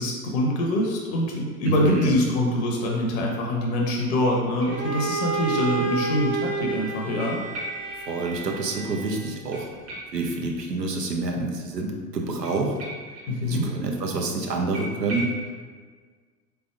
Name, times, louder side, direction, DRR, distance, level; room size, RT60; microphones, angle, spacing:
voice 1, 0.0-7.4 13.3-13.7, left 1 dB, 45° left, -1 dB, 0.7 m, -24 dB
voice 2, 1.7-2.1 8.1-9.7 10.1-12.8 13.4-15.3, right 3 dB, 85° right, 1 dB, 0.6 m, -27 dB
Creepy Guitar-Short Delay, 4.2-5.4 5.7-5.8 7.2-8.4 8.6-8.7 9.0-9.1 9.5-11.0 12.4-13.6 13.9-14.0 14.3-14.4 14.7-15.4, right 1 dB, 40° right, 1.1 m, -39 dB
Bowed string instrument, 4.7-9.5, right 4 dB, 60° right, 1.2 m, -30 dB
3.9 x 3.3 x 2.3 m, 1.5 s
figure-of-eight pair, 80°, 48 cm